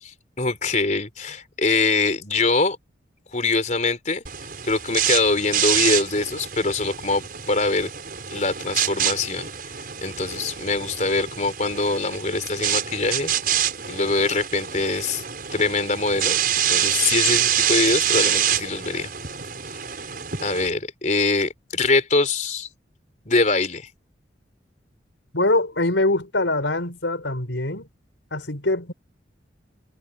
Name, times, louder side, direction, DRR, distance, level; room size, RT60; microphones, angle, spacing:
voice 1, 0.0-2.8 3.3-4.2 4.6-7.2 7.5-7.9 8.3-9.5 10.0-13.3 13.9-15.2 15.5-16.4 16.7-19.1 20.4-22.7 23.3-23.9, left 3 dB, 40° left, 3.9 m, -23 dB
sound 1, 4.3-20.7, right 9 dB, 50° right, 6.8 m, -26 dB
voice 2, 25.3-27.9 28.3-28.9, left 2 dB, 85° left, 4.7 m, -23 dB
head